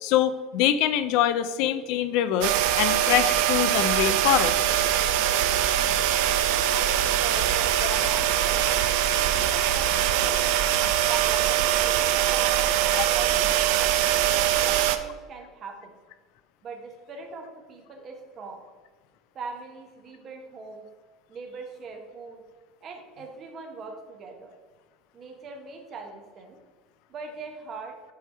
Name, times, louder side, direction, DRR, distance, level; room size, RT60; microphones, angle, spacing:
voice 1, 0.0-4.6 7.8-8.0, left 11 dB, 65° left, 12 dB, 0.4 m, -24 dB
sound 1, 2.4-15.0, right 11 dB, 75° right, 0.4 m, -23 dB
voice 2, 6.6-8.7 9.3-10.6 11.0-13.8 14.2-15.9 16.6-18.6 19.3-20.8 21.3-22.4 22.8-24.5 25.1-26.6 27.1-28.0, right 4 dB, 35° right, 2 dB, 1.0 m, -41 dB
7.8 x 3.4 x 4.5 m, 1.3 s
cardioid pair, 135°, 0 cm